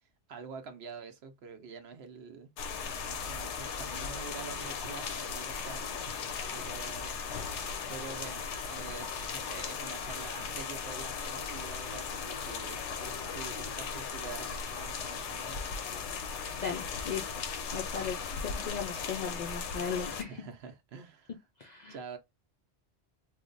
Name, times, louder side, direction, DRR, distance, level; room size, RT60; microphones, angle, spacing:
voice 1, 0.3-2.5 3.0-6.2 6.5-7.1 7.9-15.6 20.1-21.5 21.9-22.2, right 5 dB, 70° right, 0.8 m, -46 dB
sound 1, 2.6-20.2, left 6 dB, 85° left, 1.0 m, -37 dB
voice 2, 16.6-17.2 17.7-20.3 21.6-21.9, left 6 dB, 60° left, 0.4 m, -37 dB
3.1 x 2.1 x 3.8 m
omnidirectional pair, 1.2 m